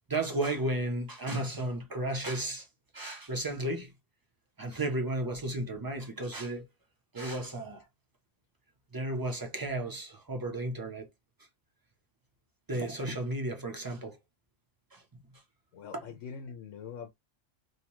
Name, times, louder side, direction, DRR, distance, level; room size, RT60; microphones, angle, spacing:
voice 1, 0.1-2.7 2.9-3.9 4.6-6.7 7.1-7.8 8.9-11.1 12.7-14.2 14.9-15.0 15.9-16.0, right 1 dB, 25° right, 0.5 m, -33 dB
voice 2, 15.7-17.1, left 6 dB, 85° left, 1.0 m, -43 dB
2.8 x 2.2 x 2.9 m
omnidirectional pair, 1.3 m